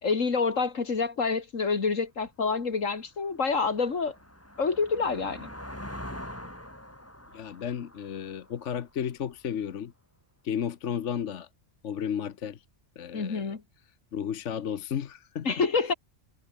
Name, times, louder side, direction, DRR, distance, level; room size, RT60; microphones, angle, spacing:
voice 1, 0.0-4.1 4.6-5.5 13.1-13.6 15.4-15.9, left 4 dB, 90° left, 2.6 m, -27 dB
sound 1, 2.2-2.3 2.8-9.4, left 1 dB, 10° left, 4.0 m, -44 dB
voice 2, 7.3-9.9 10.4-11.5 11.8-12.6 13.0-13.5 14.1-15.9, left 8 dB, 70° left, 1.3 m, -33 dB
omnidirectional pair, 1.3 m